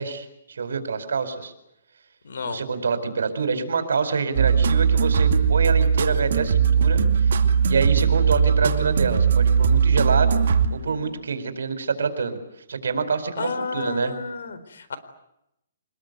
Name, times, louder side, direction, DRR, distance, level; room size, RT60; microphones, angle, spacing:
voice 1, 0.0-1.5 2.4-10.4 10.7-12.4 12.7-14.1, right 5 dB, 85° right, 9 dB, 4.7 m, -26 dB
voice 2, 2.2-2.6 13.4-15.0, left 5 dB, 80° left, 13 dB, 4.1 m, -31 dB
sound 1, 4.4-11.2, right 6 dB, 65° right, 2.4 m, -19 dB
25.0 x 21.0 x 9.4 m, 0.82 s
hypercardioid pair, 165°, 0 cm